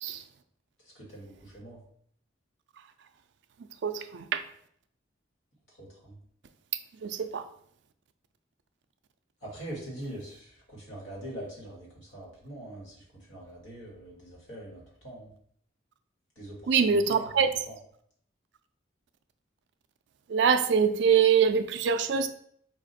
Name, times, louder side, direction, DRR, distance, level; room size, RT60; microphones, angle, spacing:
voice 1, 0.9-1.8 5.7-6.2 9.4-15.3 16.3-17.3 17.7-17.8, right 1 dB, 80° left, -3 dB, 1.7 m, -43 dB
voice 2, 3.8-4.4 7.0-7.4 16.7-17.5 20.3-22.3, right 6 dB, 65° right, 10 dB, 0.4 m, -24 dB
4.9 x 2.5 x 3.9 m, 0.65 s
head